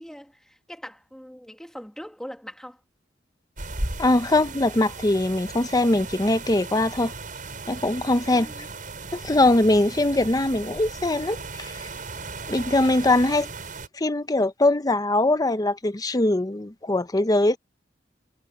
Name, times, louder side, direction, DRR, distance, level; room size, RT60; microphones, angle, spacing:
voice 1, 0.0-2.8 8.3-8.7, equal, 5° left, 2.1 m, -42 dB
sound 1, 3.6-13.9, right 3 dB, 50° right, 6.6 m, -36 dB
voice 2, 4.0-7.1 7.7-8.5 9.1-11.9 12.5-13.5 13.9-17.6, left 2 dB, 20° left, 0.7 m, -22 dB
head